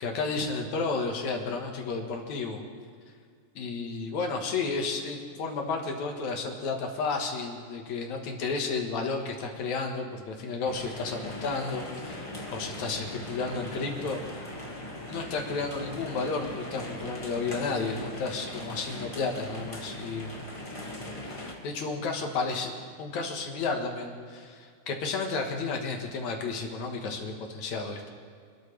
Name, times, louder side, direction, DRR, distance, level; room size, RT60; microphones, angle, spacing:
voice 1, 0.0-2.6 3.6-14.4 15.1-20.4 21.3-22.7 23.0-28.1, left 4 dB, 65° left, 2 dB, 2.8 m, -32 dB
sound 1, 10.7-21.5, left 1 dB, 20° left, 0.8 m, -40 dB
26.5 x 13.0 x 3.4 m, 2.1 s
omnidirectional pair, 3.7 m